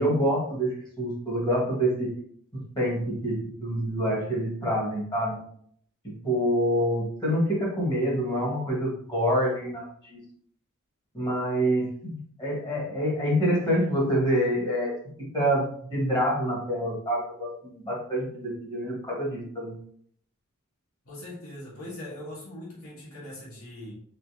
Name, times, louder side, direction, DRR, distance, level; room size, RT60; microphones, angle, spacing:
voice 1, 0.0-2.1 2.8-5.4 6.2-10.2 11.1-19.7, equal, 20° left, -4 dB, 1.9 m, -27 dB
voice 2, 21.0-23.9, left 1 dB, 75° left, -6 dB, 1.8 m, -41 dB
4.4 x 4.2 x 2.9 m, 0.62 s
head